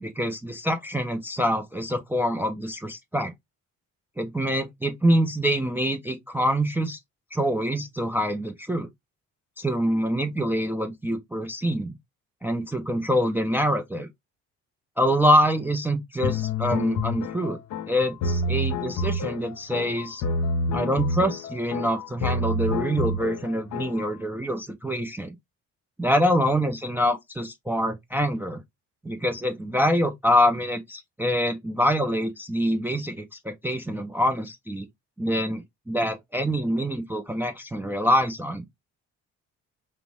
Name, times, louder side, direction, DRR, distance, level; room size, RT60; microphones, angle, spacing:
voice 1, 0.0-3.3 4.2-7.0 7.3-8.9 9.6-12.0 12.4-14.1 15.0-17.6 17.9-20.2 20.7-25.4 26.0-28.6 29.0-34.9 35.2-38.7, equal, 5° right, 0.4 m, -25 dB
sound 1, 16.2-24.1, left 2 dB, 65° left, 0.6 m, -28 dB
2.6 x 2.0 x 3.1 m
cardioid pair, 90°, 30 cm